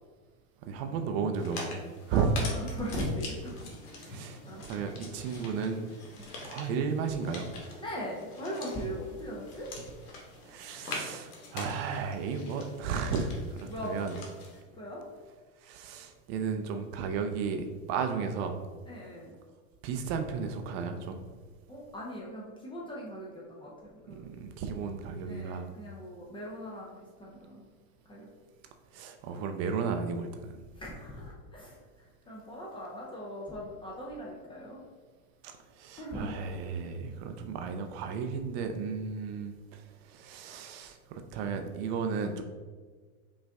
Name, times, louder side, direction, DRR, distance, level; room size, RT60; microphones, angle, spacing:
voice 1, 0.7-1.8 2.1-2.3 4.0-5.8 6.4-7.5 10.4-14.2 15.6-18.6 19.8-21.2 24.1-25.7 28.9-30.6 35.4-42.4, right 5 dB, 45° right, 6 dB, 0.5 m, -34 dB
sound 1, 1.4-14.6, left 2 dB, 85° left, 1.3 m, -44 dB
voice 2, 2.1-3.6 3.8-4.1 4.5-4.6 6.2-6.3 7.8-9.7 13.6-14.0 14.7-15.0 18.9-19.3 21.7-24.2 25.2-27.6 28.1-28.3 30.8-31.8 32.3-34.8 36.0-36.3, equal, 15° left, -4 dB, 0.4 m, -39 dB
5.3 x 2.5 x 3.3 m, 1.5 s
supercardioid pair, 125°, 44 cm